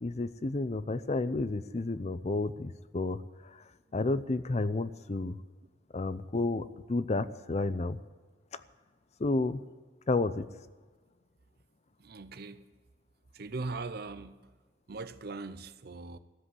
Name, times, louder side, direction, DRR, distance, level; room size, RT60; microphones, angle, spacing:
voice 1, 0.0-3.2 3.9-5.4 5.9-8.0 9.2-9.6 10.1-10.4, left 2 dB, 35° left, 0.6 m, -31 dB
voice 2, 12.0-12.7 13.3-14.4 14.9-16.2, right 3 dB, 60° right, 0.7 m, -40 dB
14.5 x 7.7 x 9.6 m
head